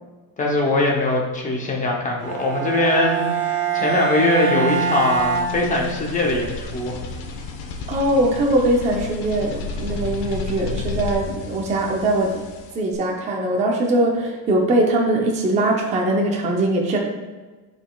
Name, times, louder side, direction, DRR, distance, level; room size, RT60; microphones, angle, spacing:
voice 1, 0.4-7.0, left 2 dB, 20° left, -1 dB, 0.7 m, -21 dB
Bowed string instrument, 2.2-6.3, right 6 dB, 90° right, 1.6 m, -24 dB
sound 1, 4.7-12.9, left 4 dB, 85° left, 1.0 m, -32 dB
voice 2, 7.9-12.5 12.7-17.0, right 1 dB, 20° right, 0 dB, 0.5 m, -21 dB
11.0 x 4.1 x 2.3 m, 1.3 s
cardioid pair, 175°, 41 cm